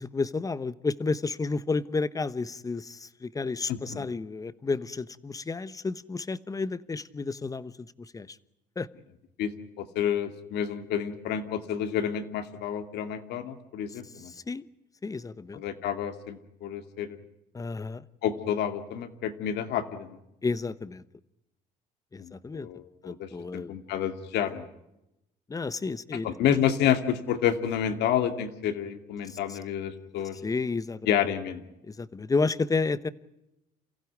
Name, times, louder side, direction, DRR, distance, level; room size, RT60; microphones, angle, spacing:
voice 1, 0.0-7.7 8.0-8.4 8.8-8.9 14.2-14.7 15.0-15.6 17.5-18.0 20.4-21.0 22.1-22.7 23.0-23.7 25.5-26.3 29.3-29.6 30.4-31.0 31.9-33.1, left 4 dB, 20° left, 16 dB, 1.0 m, -31 dB
voice 2, 3.7-4.1 9.4-9.5 9.8-14.3 15.5-17.2 18.2-20.2 22.2-24.7 26.2-30.4 31.1-31.6, left 9 dB, 80° left, 8 dB, 2.4 m, -29 dB
28.5 x 15.5 x 9.5 m, 0.88 s
cardioid pair, 110°, 17 cm